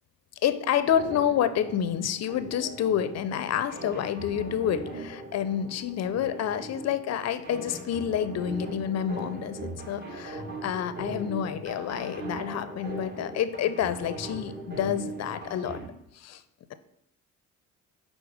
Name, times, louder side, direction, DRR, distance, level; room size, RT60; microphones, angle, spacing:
voice 1, 0.4-14.5 14.8-15.8 16.1-16.4, left 9 dB, 50° left, 13 dB, 0.6 m, -28 dB
sound 1, 0.9-15.9, right 2 dB, 30° right, 1.5 m, -40 dB
5.1 x 3.8 x 4.9 m, 0.85 s
supercardioid pair, 60°, 34 cm